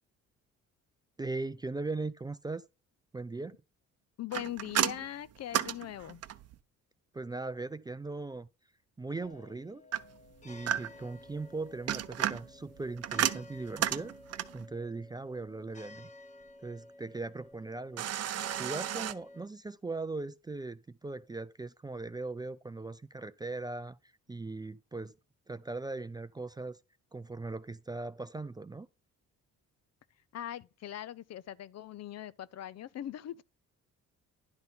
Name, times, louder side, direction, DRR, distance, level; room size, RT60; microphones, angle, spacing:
voice 1, 1.2-2.7 3.1-3.6 7.1-8.5 9.0-9.8 10.4-14.1 14.5-16.1 16.6-24.0 24.3-25.1 25.5-26.8 27.1-28.9, right 3 dB, 15° right, 0.4 m, -39 dB
voice 2, 4.2-6.2 30.3-33.4, left 11 dB, 60° left, 0.6 m, -41 dB
sound 1, 4.3-6.6 9.9-11.2 11.7-14.7 18.0-19.1, right 11 dB, 55° right, 0.7 m, -33 dB
sound 2, 9.2-19.5, left 2 dB, 25° left, 1.0 m, -53 dB
10.5 x 3.9 x 5.5 m
cardioid pair, 90°, 30 cm